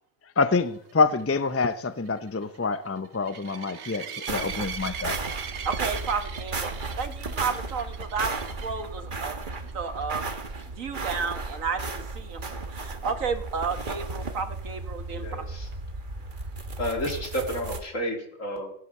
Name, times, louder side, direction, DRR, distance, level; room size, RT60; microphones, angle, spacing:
voice 1, 0.4-5.4, left 4 dB, 20° left, 0.4 m, -26 dB
sound 1, 0.9-8.8 9.4-9.7 10.0-10.1 10.5-10.6 14.2-14.3, right 7 dB, 60° right, 1.2 m, -40 dB
sound 2, 4.3-17.8, right 3 dB, 40° right, 1.6 m, -35 dB
voice 2, 5.7-6.7 7.0-8.3 8.6-9.4 9.7-10.2 10.8-12.4 12.7-15.4, right 5 dB, 85° right, 1.8 m, -32 dB
voice 3, 15.1-15.7 16.2-16.3 16.8-18.7, equal, 75° left, 3.4 m, -31 dB
17.5 x 11.0 x 6.6 m
omnidirectional pair, 1.3 m